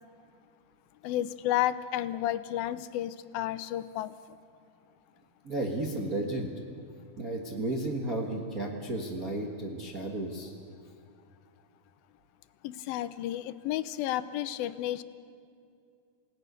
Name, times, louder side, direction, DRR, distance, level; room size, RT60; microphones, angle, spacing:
voice 1, 1.0-4.1 12.6-15.0, left 13 dB, 85° left, 14 dB, 2.5 m, -32 dB
voice 2, 5.4-6.5 7.2-10.5, right 2 dB, 50° right, -1 dB, 1.0 m, -33 dB
28.5 x 18.0 x 6.8 m, 2.4 s
omnidirectional pair, 4.2 m